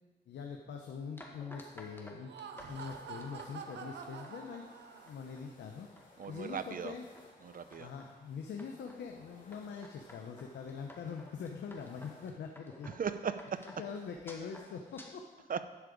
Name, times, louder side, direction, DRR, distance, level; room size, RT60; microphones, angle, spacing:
voice 1, 0.3-4.6 5.1-5.9 6.3-7.0 7.8-12.9 13.8-15.2, left 6 dB, 85° left, 2 dB, 0.9 m, -43 dB
sound 1, 1.2-4.6 5.1-5.5 5.8-6.3 6.9-7.3 7.7-8.1 8.6-9.0 9.5-15.1, left 1 dB, 10° left, 1.8 m, -54 dB
Laughter, 2.1-5.4, right 6 dB, 80° right, 1.0 m, -47 dB
sound 2, 2.6-12.3, left 2 dB, 45° left, 3.2 m, -61 dB
voice 2, 6.2-7.0 7.4-7.9 12.8-13.6 15.5-15.6, right 7 dB, 50° right, 11 dB, 0.8 m, -38 dB
11.5 x 5.0 x 8.5 m, 1.3 s
cardioid pair, 80°, 18 cm